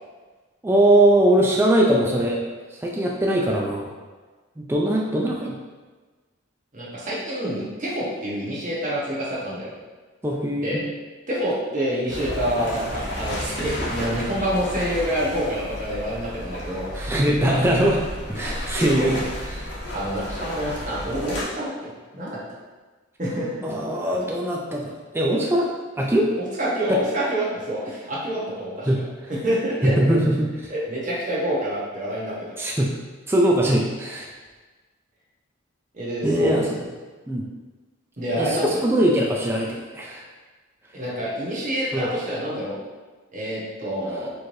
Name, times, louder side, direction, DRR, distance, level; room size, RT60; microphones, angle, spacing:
voice 1, 0.6-2.4 2.7-4.0 4.6-5.6 10.2-10.8 16.9-18.0 18.3-19.2 19.5-19.7 23.6-25.7 26.0-26.3 26.9-27.0 28.9-29.3 29.8-30.7 32.6-32.9 33.3-34.3 36.2-36.7 37.3-37.5 38.4-40.3 41.9-42.1 44.1-44.2, right 1 dB, 10° right, -2 dB, 0.3 m, -21 dB
voice 2, 6.7-9.7 10.6-10.8 11.3-17.1 17.4-17.7 18.8-19.2 19.9-22.4 23.2-23.6 26.6-28.9 29.3-30.0 30.7-32.4 35.9-36.9 38.2-38.8 40.9-42.8 43.3-44.3, right 1 dB, 40° right, -6 dB, 1.0 m, -27 dB
sound 1, 12.1-21.4, left 1 dB, 55° left, 1.0 m, -32 dB
4.5 x 3.1 x 2.6 m, 1.3 s
head